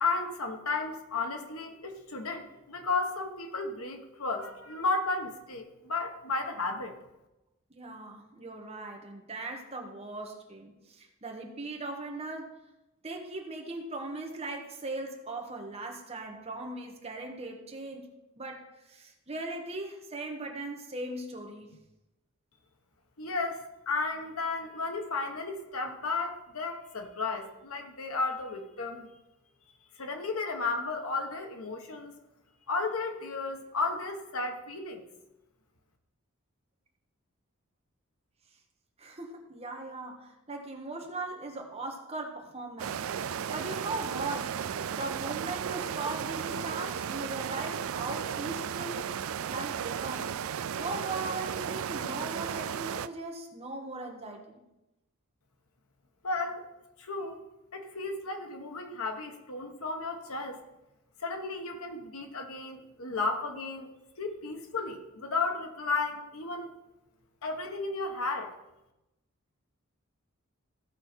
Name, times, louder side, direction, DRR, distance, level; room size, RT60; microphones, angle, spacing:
voice 1, 0.0-6.9 23.2-29.1 30.0-32.2 32.7-35.0 56.2-56.7 57.0-57.4 57.7-60.6 61.2-63.9 64.2-66.7 67.4-68.5, left 3 dB, 85° left, 4 dB, 1.3 m, -33 dB
voice 2, 7.7-12.6 13.0-18.1 18.4-21.8 39.0-44.6 44.9-50.3 50.8-54.6, right 2 dB, 30° right, 2 dB, 1.4 m, -39 dB
sound 1, 42.8-53.1, right 8 dB, 70° right, 0.4 m, -34 dB
15.5 x 5.5 x 4.4 m, 0.96 s
head